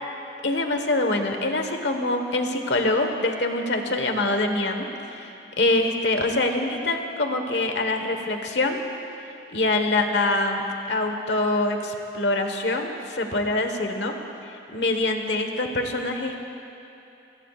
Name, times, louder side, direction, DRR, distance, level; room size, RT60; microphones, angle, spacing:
voice 1, 0.4-4.9 5.1-5.3 5.6-8.8 9.5-10.6 10.9-14.2 14.7-16.3, left 2 dB, 70° left, 4 dB, 1.4 m, -24 dB
24.0 x 22.0 x 2.5 m, 2.8 s
head